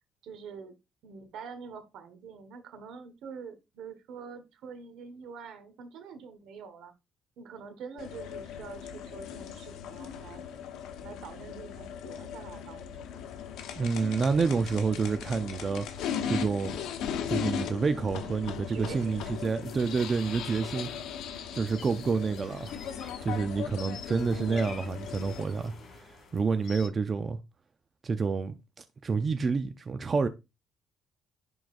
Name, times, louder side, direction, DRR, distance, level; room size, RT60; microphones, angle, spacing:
voice 1, 0.2-0.7 1.0-6.9 7.4-10.4 11.0-13.3 18.7-19.3, right 6 dB, 75° right, 1.4 m, -45 dB
sound 1, 8.0-25.4, left 8 dB, 80° left, 1.1 m, -38 dB
voice 2, 13.8-16.8 17.3-20.9 21.5-22.7 23.2-26.0 26.3-27.4 28.0-28.5 29.0-30.3, right 4 dB, 30° right, 0.5 m, -28 dB
sound 2, 19.0-26.9, left 5 dB, 55° left, 2.7 m, -49 dB
10.5 x 3.9 x 2.6 m
cardioid pair, 115°, 0 cm